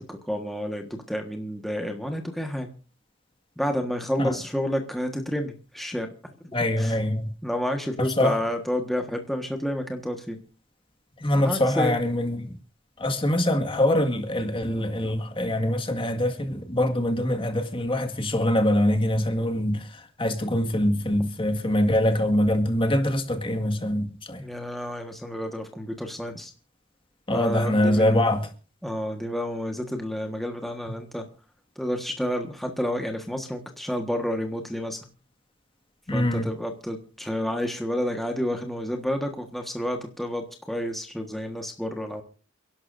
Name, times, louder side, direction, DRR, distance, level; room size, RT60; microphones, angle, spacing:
voice 1, 0.0-2.7 3.6-6.1 6.8-7.0 7.4-10.4 11.3-12.0 21.2-21.3 24.4-26.5 27.3-28.3 28.8-31.2 31.8-35.0 36.1-42.2, equal, ahead, 1.4 m, -30 dB
voice 2, 6.5-7.3 8.0-8.4 11.2-12.5 13.0-19.8 20.2-24.4 27.3-28.5 36.1-36.5, left 1 dB, 25° left, 1.8 m, -24 dB
29.5 x 11.5 x 2.6 m
head